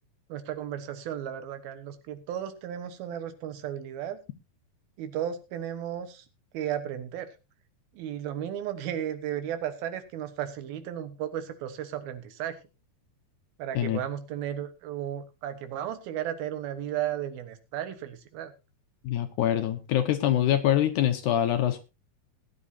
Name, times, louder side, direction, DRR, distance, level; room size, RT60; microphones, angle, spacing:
voice 1, 0.3-4.2 5.0-6.2 6.5-7.3 8.0-12.6 13.6-18.5, right 10 dB, 85° right, 10 dB, 3.1 m, -34 dB
voice 2, 19.0-21.8, left 11 dB, 70° left, 8 dB, 2.0 m, -24 dB
19.0 x 9.8 x 2.7 m, 0.27 s
omnidirectional pair, 4.2 m